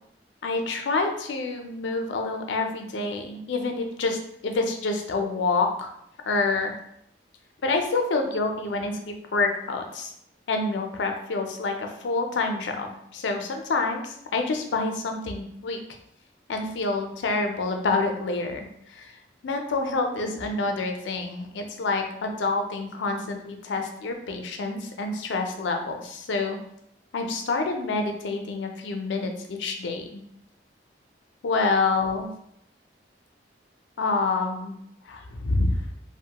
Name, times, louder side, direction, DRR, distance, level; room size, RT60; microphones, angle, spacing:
voice 1, 0.4-5.9 6.3-6.7 7.6-10.1 10.5-15.8 16.5-19.1 19.4-26.6 27.1-30.2 31.4-32.3 34.0-34.8 35.1-35.9, left 3 dB, 80° left, 4 dB, 0.4 m, -27 dB
2.9 x 2.1 x 2.8 m, 0.73 s
head